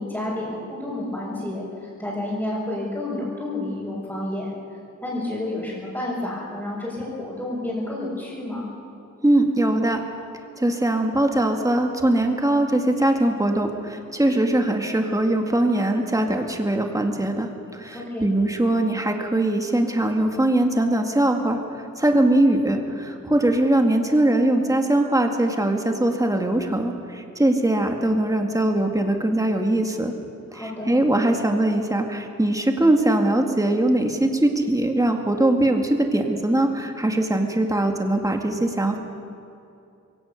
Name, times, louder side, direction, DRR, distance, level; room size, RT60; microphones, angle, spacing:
voice 1, 0.0-4.5 5.0-8.6 17.9-18.3 30.5-30.9, left 1 dB, 10° left, -9 dB, 5.6 m, -30 dB
voice 2, 9.2-10.0 10.6-30.1 30.5-39.0, right 1 dB, 10° right, 3 dB, 2.1 m, -21 dB
22.5 x 17.5 x 7.0 m, 2.7 s
wide cardioid pair, 120°, 30 cm